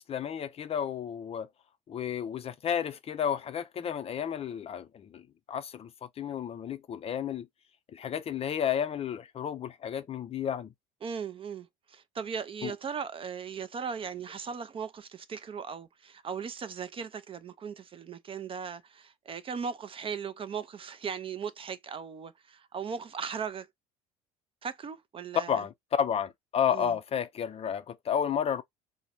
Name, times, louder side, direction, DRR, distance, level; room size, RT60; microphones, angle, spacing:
voice 1, 0.0-1.5 1.9-5.9 6.2-7.5 7.9-10.7 12.6-12.7 25.5-28.6, left 8 dB, 35° left, 0.4 m, -32 dB
voice 2, 11.0-23.7 24.6-25.6 26.7-27.0, right 6 dB, 30° right, 0.4 m, -38 dB
3.8 x 2.1 x 2.8 m
hypercardioid pair, 75°, 19 cm